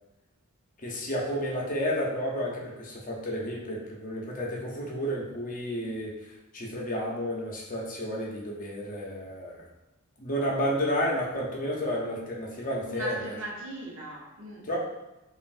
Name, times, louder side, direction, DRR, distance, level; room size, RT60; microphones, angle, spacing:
voice 1, 0.8-9.7 10.2-13.3 14.6-14.8, equal, 40° left, -3 dB, 0.7 m, -31 dB
voice 2, 12.9-14.7, right 1 dB, 60° right, -3 dB, 0.9 m, -38 dB
5.3 x 2.5 x 2.5 m, 0.99 s
head